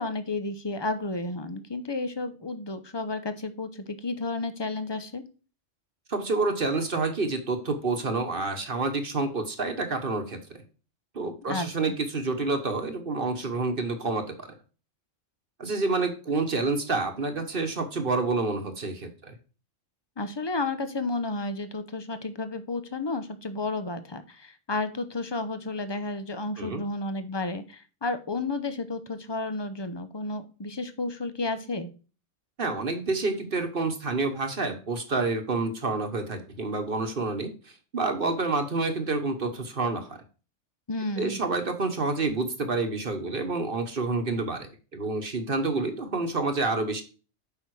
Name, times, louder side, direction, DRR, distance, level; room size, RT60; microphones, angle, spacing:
voice 1, 0.0-5.2 11.5-11.9 20.2-31.9 40.9-41.4, left 2 dB, 25° left, 10 dB, 0.8 m, -32 dB
voice 2, 6.1-10.4 11.1-14.5 15.6-19.3 26.6-26.8 32.6-40.2 41.2-47.0, right 3 dB, 45° right, 6 dB, 1.3 m, -28 dB
8.6 x 5.6 x 4.8 m, 0.35 s
omnidirectional pair, 1.3 m